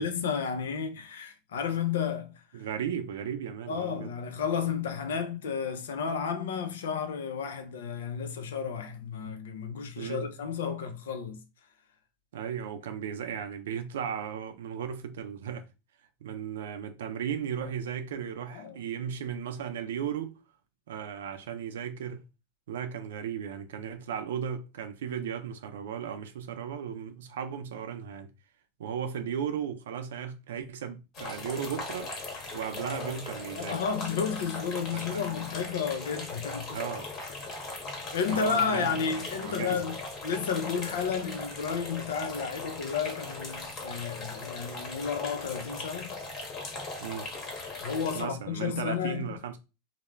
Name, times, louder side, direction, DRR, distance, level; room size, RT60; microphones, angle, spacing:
voice 1, 0.0-2.4 3.7-11.4 18.5-18.8 33.5-36.8 38.1-40.0 40.2-46.2 47.8-49.3, left 6 dB, 90° left, 0.5 m, -32 dB
voice 2, 2.5-4.1 10.0-10.3 12.3-15.6 16.2-20.4 20.9-22.2 22.7-28.3 28.8-32.1 32.5-33.8 34.9-35.2 36.7-37.1 38.3-39.0 39.4-39.8 47.0-47.3 48.1-49.6, right 8 dB, 85° right, 0.4 m, -35 dB
sound 1, 31.1-48.2, left 3 dB, 40° left, 1.0 m, -39 dB
2.3 x 2.0 x 3.1 m
supercardioid pair, 115°, 0 cm